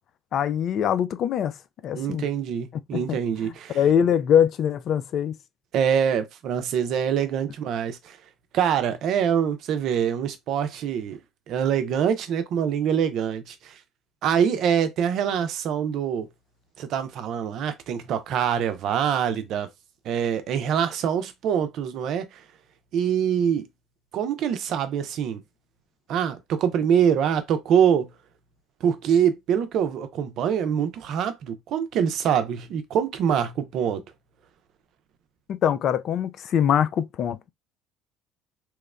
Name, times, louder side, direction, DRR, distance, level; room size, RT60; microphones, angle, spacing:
voice 1, 0.3-1.6 1.8-2.3 2.9-3.2 3.4-5.4 35.5-37.5, left 9 dB, 55° left, 0.3 m, -23 dB
voice 2, 1.9-3.8 5.7-8.2 8.5-11.2 11.5-13.8 14.2-16.3 16.8-19.7 20.0-22.4 22.9-23.7 24.1-25.4 26.1-28.1 28.8-34.0, right 8 dB, 60° right, 0.5 m, -24 dB
2.9 x 2.0 x 2.3 m
supercardioid pair, 75°, 0 cm